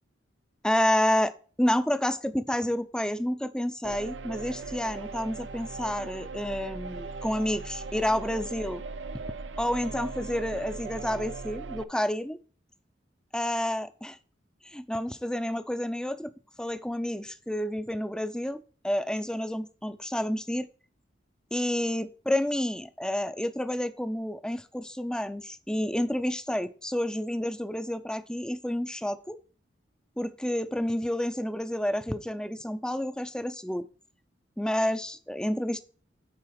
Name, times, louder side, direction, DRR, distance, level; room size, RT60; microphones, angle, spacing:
voice 1, 0.6-1.3 1.6-8.8 9.6-12.4 13.3-14.2 14.6-16.3 16.6-20.7 21.5-29.4 30.2-33.8 34.6-35.8, left 1 dB, 5° left, 12 dB, 0.6 m, -29 dB
sound 1, 3.8-11.8, right 4 dB, 85° right, 0.6 m, -39 dB
9.7 x 4.1 x 5.8 m, 0.40 s
head